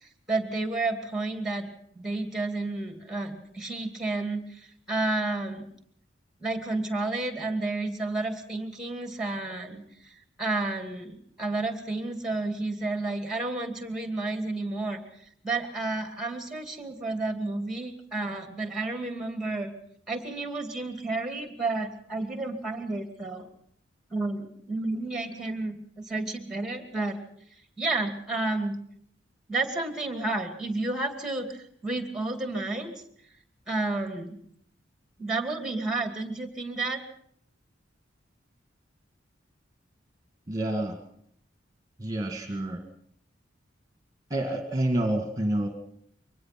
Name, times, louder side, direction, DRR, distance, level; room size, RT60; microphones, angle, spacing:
voice 1, 0.0-5.7 6.4-19.7 20.1-23.5 24.1-27.2 27.8-28.8 29.5-32.9 33.7-34.4 35.2-37.0, right 2 dB, 5° right, 6 dB, 2.4 m, -31 dB
voice 2, 40.5-41.0 42.0-42.8 44.3-45.7, right 1 dB, 20° right, 4 dB, 2.0 m, -28 dB
23.5 x 19.5 x 6.0 m, 0.68 s
head